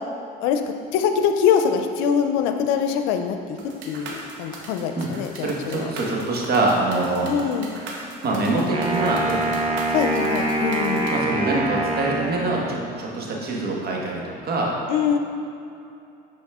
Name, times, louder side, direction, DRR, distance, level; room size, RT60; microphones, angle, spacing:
voice 1, 0.9-3.6 3.8-5.9 7.3-7.8 9.9-11.1 14.9-15.2, left 7 dB, 90° left, 6 dB, 0.6 m, -23 dB
sound 1, 3.6-11.1, right 3 dB, 75° right, 1.2 m, -38 dB
voice 2, 5.3-7.3 8.2-9.8 11.1-14.7, right 2 dB, 55° right, -2 dB, 1.6 m, -25 dB
Wind instrument woodwind instrument, 8.7-13.0, right 2 dB, 30° right, 1.0 m, -25 dB
10.5 x 4.2 x 3.6 m, 2.7 s
supercardioid pair, 95°, 20 cm